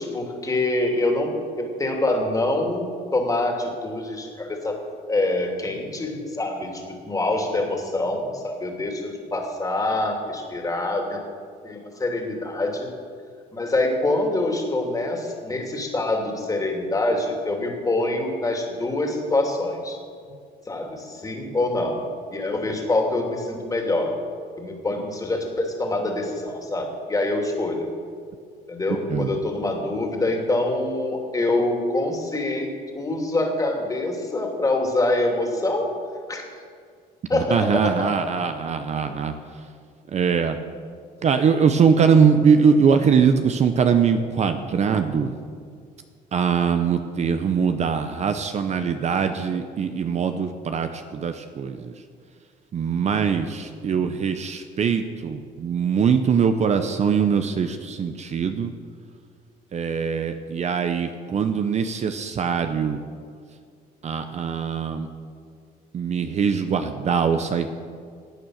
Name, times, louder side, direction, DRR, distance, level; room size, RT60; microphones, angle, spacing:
voice 1, 0.0-4.8 5.1-11.2 11.6-12.9 13.5-20.0 20.7-22.0 22.3-24.1 24.6-27.9 28.7-35.9 36.3-36.5 37.3-38.5, left 2 dB, 20° left, 2 dB, 2.7 m, -25 dB
voice 2, 29.1-29.4 37.3-39.3 40.1-40.6 41.2-45.3 46.3-51.9 52.7-58.7 59.7-63.0 64.0-65.1 65.9-67.7, right 6 dB, 40° right, 8 dB, 0.8 m, -22 dB
16.0 x 8.8 x 6.5 m, 2.1 s
cardioid pair, 110°, 17 cm